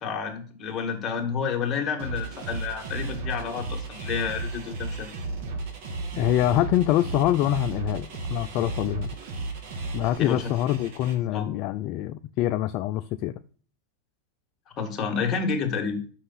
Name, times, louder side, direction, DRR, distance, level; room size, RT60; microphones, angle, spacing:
voice 1, 0.0-5.1 10.2-10.5 11.3-11.5 14.7-16.0, left 6 dB, 30° left, 1.8 m, -29 dB
sound 1, 2.0-11.1, right 3 dB, 65° right, 2.2 m, -34 dB
voice 2, 6.2-9.1 9.9-13.3, left 13 dB, 50° left, 0.4 m, -25 dB
5.9 x 5.7 x 4.0 m
supercardioid pair, 125°, 0 cm